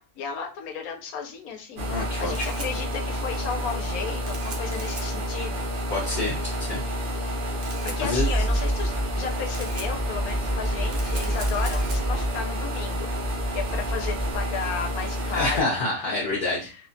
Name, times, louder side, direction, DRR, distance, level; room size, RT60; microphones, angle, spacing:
voice 1, 0.0-1.9 2.2-5.6 7.8-13.1 13.5-15.7 16.4-16.8, left 6 dB, 85° left, 3 dB, 1.1 m, -34 dB
sound 1, 1.8-15.6, equal, 60° right, 0.6 m, -30 dB
voice 2, 1.9-2.5 5.9-6.8 8.0-8.3 15.3-16.7, left 2 dB, 50° left, -4 dB, 0.6 m, -27 dB
Camera, 2.3-15.3, right 3 dB, 80° right, 1.2 m, -44 dB
sound 2, 8.1-14.4, right 1 dB, 5° right, 0.5 m, -29 dB
3.0 x 2.1 x 2.6 m, 0.35 s
omnidirectional pair, 1.5 m